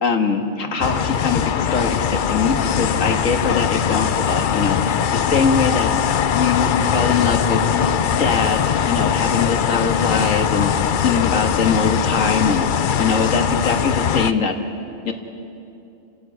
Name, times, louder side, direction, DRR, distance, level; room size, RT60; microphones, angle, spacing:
voice 1, 0.0-10.7 11.0-12.7 13.0-14.6 15.1-15.2, left 4 dB, 90° left, 5 dB, 1.9 m, -22 dB
sound 1, 0.8-14.3, left 8 dB, 55° left, 0.6 m, -21 dB
30.0 x 12.5 x 9.1 m, 2.7 s
omnidirectional pair, 1.3 m